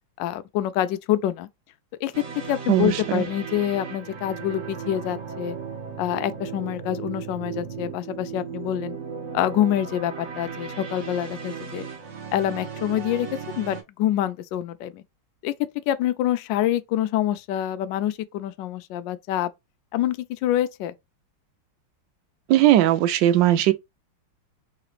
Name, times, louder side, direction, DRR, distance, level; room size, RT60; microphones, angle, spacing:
voice 1, 0.2-1.5 2.0-5.6 6.0-9.0 9.3-11.9 12.3-13.3 13.6-15.0 15.4-15.5 15.9-19.5 19.9-20.9, left 12 dB, 75° left, 1.1 m, -26 dB
sound 1, 2.1-13.8, right 6 dB, 40° right, 1.1 m, -36 dB
voice 2, 2.7-3.2 22.5-23.7, right 13 dB, 75° right, 1.1 m, -18 dB
4.9 x 3.2 x 3.1 m
omnidirectional pair, 2.4 m